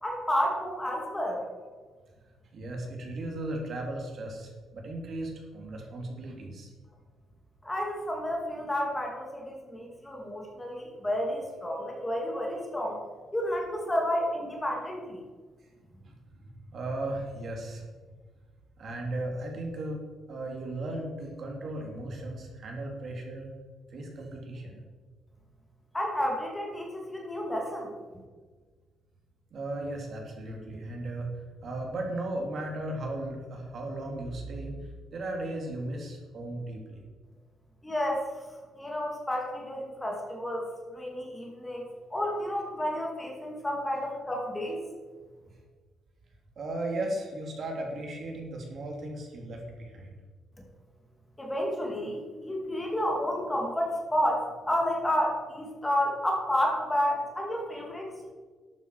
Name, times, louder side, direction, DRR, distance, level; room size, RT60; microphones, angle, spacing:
voice 1, 0.0-1.5 7.6-13.0 13.3-15.2 25.9-27.9 37.8-38.3 38.7-44.8 51.4-58.3, equal, 10° left, 0 dB, 2.4 m, -31 dB
voice 2, 2.5-6.7 16.0-17.9 18.8-20.0 20.3-23.5 23.9-24.8 29.5-37.0 46.6-50.2 57.7-57.8, right 1 dB, 45° right, 1 dB, 2.8 m, -36 dB
12.0 x 9.1 x 4.7 m, 1.4 s
cardioid pair, 140°, 0 cm